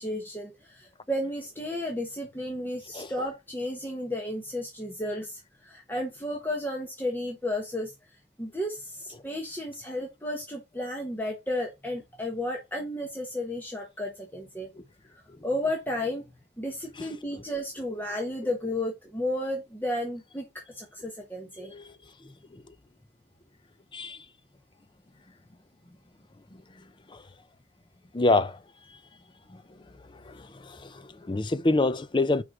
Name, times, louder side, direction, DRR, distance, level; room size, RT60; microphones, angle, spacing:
voice 1, 0.0-7.9 8.4-14.7 15.1-16.3 16.6-21.7, left 1 dB, 10° left, 1.2 m, -33 dB
voice 2, 21.6-22.0 22.5-22.6 23.9-24.2 27.1-27.2 28.1-28.6 29.5-29.6 30.1-32.4, left 2 dB, 25° left, 0.5 m, -27 dB
5.1 x 4.7 x 5.9 m
head